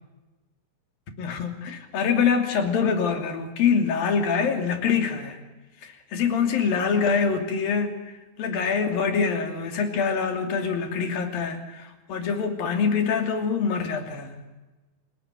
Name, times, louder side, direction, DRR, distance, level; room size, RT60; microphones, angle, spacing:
voice 1, 1.2-5.4 5.8-14.4, left 6 dB, 75° left, 5 dB, 4.7 m, -25 dB
28.5 x 19.5 x 9.2 m, 1.2 s
omnidirectional pair, 4.2 m